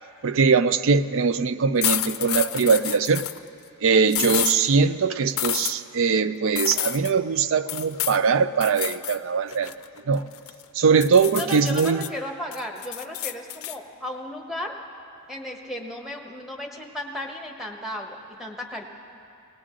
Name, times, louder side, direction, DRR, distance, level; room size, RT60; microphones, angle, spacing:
voice 1, 0.2-3.3 3.8-9.7 10.1-10.2 10.7-12.0, right 5 dB, 60° right, 0.4 m, -21 dB
sound 1, 1.8-3.4 4.1-4.6 5.4-5.7 6.6-7.1 7.7-8.2 8.6-9.2 9.5-10.6 11.0-12.1 12.5-13.8, left 13 dB, 70° left, 0.5 m, -29 dB
voice 2, 11.4-14.7 15.3-18.8, left 1 dB, ahead, 1.1 m, -34 dB
19.0 x 18.0 x 3.8 m
head